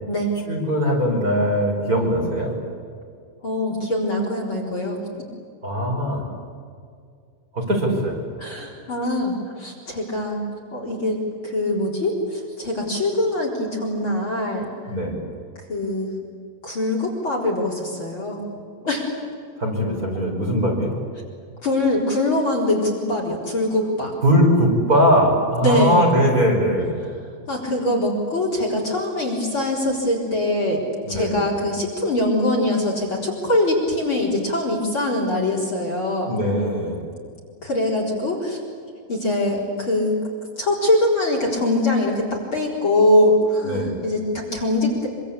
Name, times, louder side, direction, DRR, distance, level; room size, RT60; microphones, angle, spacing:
voice 1, 0.5-2.6 5.6-6.2 7.5-8.2 14.9-15.2 19.6-20.9 24.2-26.9 31.0-31.4 36.3-37.0 43.6-44.0, equal, 20° right, -1 dB, 5.3 m, -20 dB
voice 2, 3.4-5.0 8.4-10.4 10.7-14.7 15.7-16.1 16.6-18.4 18.8-19.1 21.6-24.1 25.6-26.0 27.5-36.4 37.6-38.6 39.1-40.1 40.6-45.1, left 1 dB, 35° left, -1 dB, 4.7 m, -23 dB
26.0 x 25.5 x 8.6 m, 2.3 s
omnidirectional pair, 4.4 m